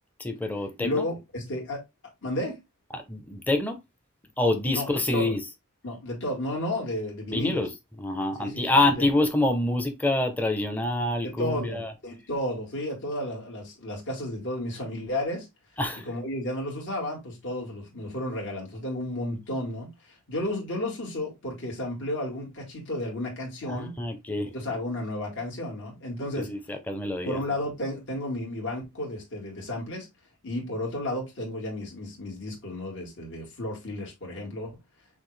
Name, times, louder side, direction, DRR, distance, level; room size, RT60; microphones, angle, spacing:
voice 1, 0.2-1.0 2.9-3.8 4.4-5.4 7.3-7.7 8.0-11.9 15.8-16.1 23.7-24.5 26.4-27.4, left 2 dB, 10° left, 0.8 m, -26 dB
voice 2, 0.8-1.8 2.2-2.6 4.7-4.9 5.1-5.3 5.8-7.6 8.4-8.6 8.9-9.0 11.2-15.5 16.1-19.9 20.3-24.0 24.5-26.5 27.2-30.1 30.4-34.7, left 1 dB, 60° left, 2.0 m, -32 dB
6.0 x 2.5 x 3.3 m
head